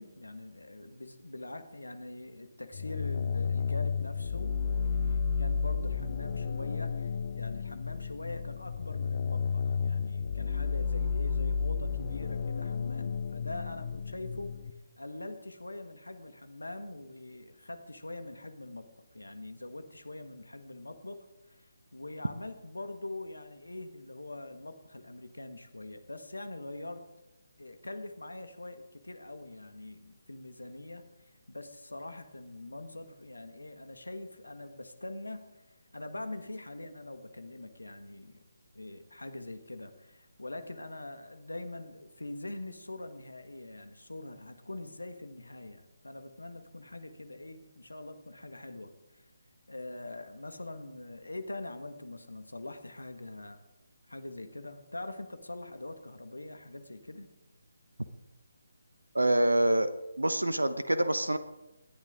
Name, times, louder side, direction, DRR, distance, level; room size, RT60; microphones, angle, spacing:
voice 1, 0.0-14.5 15.0-27.0 27.6-31.0 31.5-35.4 35.9-38.4 38.7-49.2 49.7-53.6 54.1-57.3, left 2 dB, 80° left, 8 dB, 1.7 m, -43 dB
sound 1, 2.7-14.7, left 5 dB, 40° left, 0.9 m, -32 dB
voice 2, 59.1-59.9 60.2-61.4, right 1 dB, 80° right, 11 dB, 1.1 m, -26 dB
27.5 x 11.5 x 3.8 m, 0.99 s
figure-of-eight pair, 145°, 0 cm